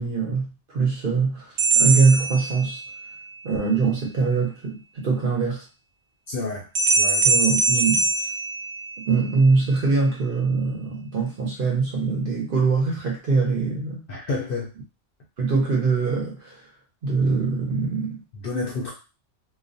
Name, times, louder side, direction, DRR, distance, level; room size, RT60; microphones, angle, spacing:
voice 1, 0.0-2.8 3.4-5.7 7.2-8.1 9.1-14.0 15.4-16.6 17.0-18.2, right 4 dB, 55° right, -1 dB, 0.8 m, -23 dB
sound 1, 1.6-3.1 6.7-9.3, right 4 dB, 85° right, 1.0 m, -22 dB
voice 2, 6.3-7.3 14.1-14.7 18.3-18.9, left 3 dB, 60° left, -2 dB, 0.6 m, -30 dB
2.3 x 2.2 x 2.5 m, 0.32 s
omnidirectional pair, 1.3 m